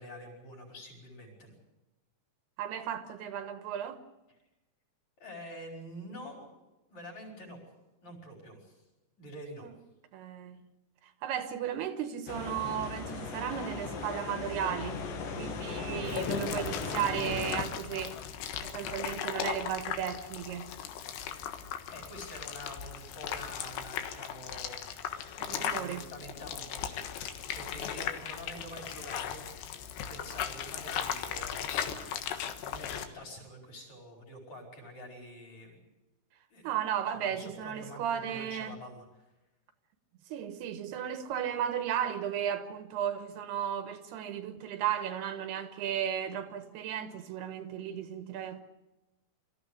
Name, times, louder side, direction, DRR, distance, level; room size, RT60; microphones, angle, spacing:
voice 1, 0.0-1.5 5.2-6.5 6.9-7.6 8.0-8.8 9.2-9.7 21.9-24.9 25.5-29.8 30.1-35.8 36.5-39.2, equal, 40° left, 6.6 m, -47 dB
voice 2, 2.6-4.0 9.6-9.7 10.1-10.6 11.2-15.0 15.4-18.2 18.6-20.7 25.4-26.0 36.6-38.8 40.3-48.6, right 9 dB, 75° right, 3.1 m, -35 dB
sound 1, 12.3-17.6, left 4 dB, 55° left, 3.5 m, -37 dB
sound 2, 16.0-33.0, left 9 dB, 80° left, 3.5 m, -37 dB
25.0 x 14.5 x 10.0 m
omnidirectional pair, 4.8 m